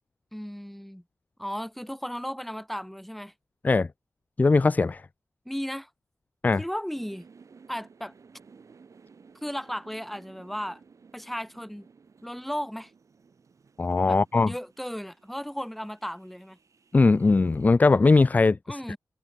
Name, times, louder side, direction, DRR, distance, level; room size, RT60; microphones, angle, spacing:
voice 1, 0.3-1.0 1.4-3.3 5.4-5.9 6.6-7.3 7.7-8.1 9.4-10.8 11.1-11.9 12.2-12.9 14.1-16.6 18.7-19.0, equal, ahead, 3.2 m, -35 dB
voice 2, 4.4-5.0 6.4-6.6 13.8-14.5 16.9-19.0, left 3 dB, 25° left, 0.4 m, -20 dB
sound 1, 6.9-17.7, right 5 dB, 60° right, 6.7 m, -56 dB
open air
wide cardioid pair, 145°, 6 cm